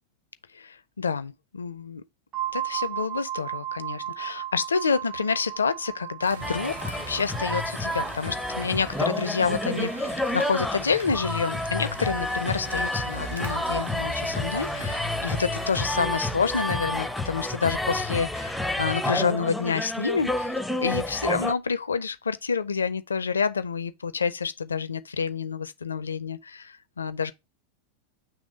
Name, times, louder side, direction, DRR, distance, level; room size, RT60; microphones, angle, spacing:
voice 1, 0.5-2.0 2.5-20.5 20.8-27.3, left 5 dB, 75° left, 0.5 m, -28 dB
sound 1, 2.3-12.0, right 12 dB, 35° right, 1.3 m, -37 dB
sound 2, 6.2-16.1, right 3 dB, 75° right, 0.9 m, -43 dB
sound 3, 6.4-21.5, left 1 dB, ahead, 0.6 m, -29 dB
7.9 x 3.2 x 5.0 m
figure-of-eight pair, 90°, 0 cm